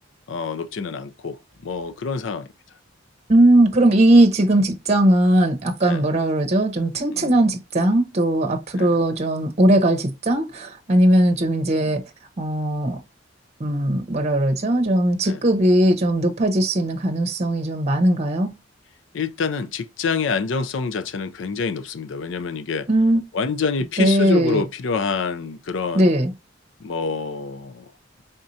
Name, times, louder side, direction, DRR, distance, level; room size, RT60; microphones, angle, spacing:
voice 1, 0.3-2.5 5.8-6.1 7.1-7.3 8.7-9.0 15.2-15.4 19.1-22.9 23.3-26.1 26.8-27.9, left 5 dB, 75° left, 0.5 m, -27 dB
voice 2, 3.3-12.0 12.4-13.0 13.6-18.5 22.9-23.2 24.0-24.6 25.9-26.3, right 1 dB, 35° right, 0.8 m, -19 dB
4.3 x 3.6 x 2.6 m
head